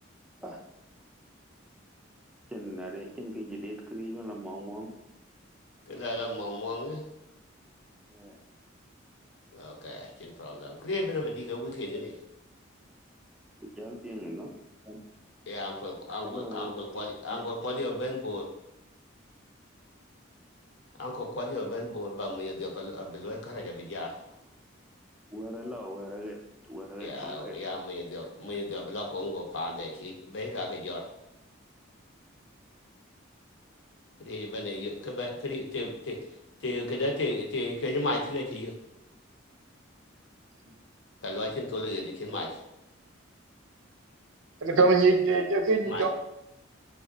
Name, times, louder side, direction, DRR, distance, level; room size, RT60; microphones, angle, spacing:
voice 1, 2.5-4.9 8.1-8.4 13.6-14.5 14.9-15.0 16.2-16.7 17.3-17.4 25.3-26.4 26.6-27.6, equal, 5° right, 0 dB, 0.4 m, -40 dB
voice 2, 5.9-7.0 9.5-12.1 15.5-18.5 21.0-24.2 27.0-31.0 34.2-36.2 36.6-38.7 41.2-42.5 45.9-46.0, left 2 dB, 65° left, 1 dB, 0.6 m, -34 dB
voice 3, 44.6-46.1, right 3 dB, 75° right, 5 dB, 0.5 m, -22 dB
3.4 x 2.1 x 3.7 m, 0.86 s
head